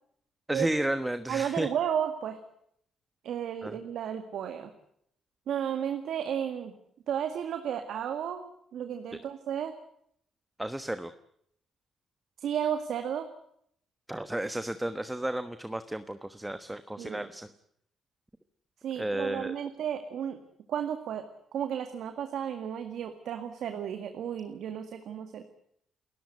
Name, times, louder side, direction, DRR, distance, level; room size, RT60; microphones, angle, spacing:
voice 1, 0.5-1.7 3.6-3.8 10.6-11.1 14.1-17.5 19.0-19.5, right 1 dB, 10° right, 11 dB, 1.2 m, -32 dB
voice 2, 1.3-2.4 3.2-4.7 5.5-6.7 7.1-9.7 12.4-13.3 17.0-17.2 18.8-20.4 20.7-21.3 21.5-25.4, right 9 dB, 75° right, 8 dB, 1.9 m, -33 dB
29.0 x 14.5 x 9.6 m, 0.71 s
cardioid pair, 90°, 0 cm